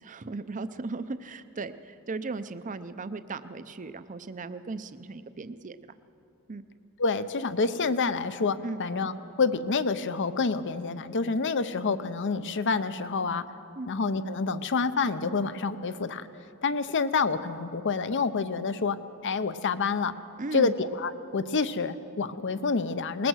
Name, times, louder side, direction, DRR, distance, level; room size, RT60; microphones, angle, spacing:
voice 1, 0.0-5.9 6.5-6.6 8.6-8.8 13.8-13.9 20.4-20.7, right 3 dB, 35° right, 12 dB, 0.6 m, -37 dB
voice 2, 7.0-13.5 13.9-16.3 16.6-19.0 19.2-20.1 20.5-23.3, left 4 dB, 55° left, 12 dB, 0.7 m, -28 dB
20.5 x 20.0 x 6.4 m, 2.8 s
head